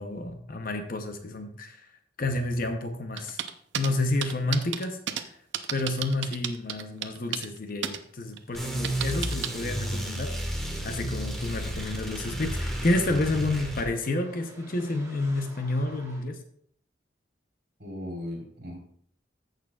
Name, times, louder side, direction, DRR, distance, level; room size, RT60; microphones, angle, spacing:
voice 1, 0.0-1.9 2.2-3.4 3.7-5.4 5.7-16.4, left 2 dB, 50° left, 6 dB, 0.8 m, -30 dB
sound 1, 3.2-3.9 4.2-5.2 5.5-7.6 7.8-8.0 8.4-9.5, right 9 dB, 75° right, 0.6 m, -32 dB
sound 2, 8.5-13.9, equal, ahead, 1.4 m, -32 dB
sound 3, 10.6-16.2, equal, 15° right, 1.5 m, -52 dB
voice 2, 17.8-18.8, left 1 dB, 60° right, -1 dB, 3.6 m, -37 dB
14.5 x 6.6 x 2.4 m, 0.63 s
head